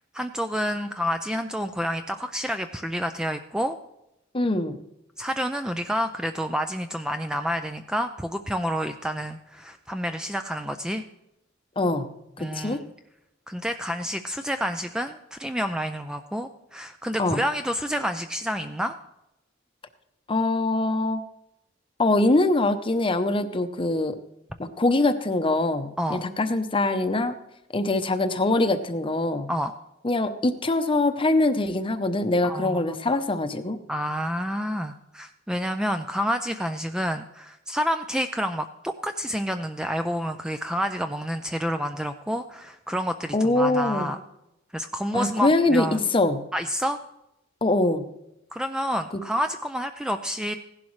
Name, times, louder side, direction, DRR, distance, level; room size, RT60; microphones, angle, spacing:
voice 1, 0.1-3.8 5.2-11.0 12.4-12.9 13.5-18.9 26.0-26.3 29.5-29.7 32.4-33.2 33.9-44.2 44.7-46.0 46.5-47.0 48.5-50.5, equal, 5° right, 7 dB, 0.4 m, -29 dB
voice 2, 4.3-4.8 11.8-12.1 12.5-12.8 17.2-17.4 20.3-21.2 22.0-24.1 24.6-27.3 27.7-29.5 30.0-33.8 43.3-44.1 45.1-46.4 47.6-48.0, left 2 dB, 25° left, 10 dB, 0.7 m, -23 dB
16.0 x 11.0 x 3.2 m, 0.86 s
head